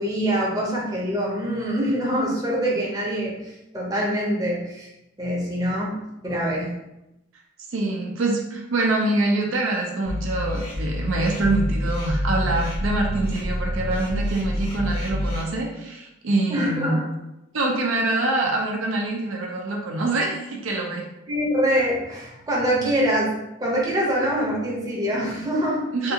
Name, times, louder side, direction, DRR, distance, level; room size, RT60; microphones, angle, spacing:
voice 1, 0.0-4.9 5.2-5.9 6.2-6.7 16.5-17.1 21.3-23.3 23.6-25.8 26.0-26.1, equal, 15° right, -5 dB, 0.7 m, -24 dB
voice 2, 7.7-17.0 17.5-21.1 25.9-26.1, right 2 dB, 65° right, 0 dB, 0.5 m, -25 dB
sound 1, 10.1-15.4, equal, 25° left, 0.6 m, -27 dB
3.5 x 2.4 x 2.8 m, 0.90 s
head